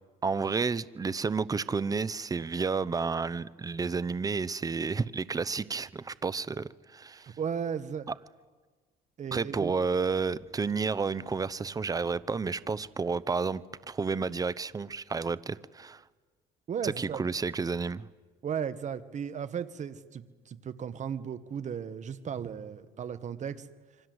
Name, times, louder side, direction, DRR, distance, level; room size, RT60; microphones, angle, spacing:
voice 1, 0.2-7.3 9.3-16.0 16.8-18.1, right 4 dB, 20° right, 0.8 m, -31 dB
voice 2, 7.2-8.1 9.2-9.7 16.7-17.2 18.4-23.7, right 7 dB, 45° right, 1.5 m, -35 dB
28.0 x 24.5 x 8.0 m
cardioid pair, 110°, 17 cm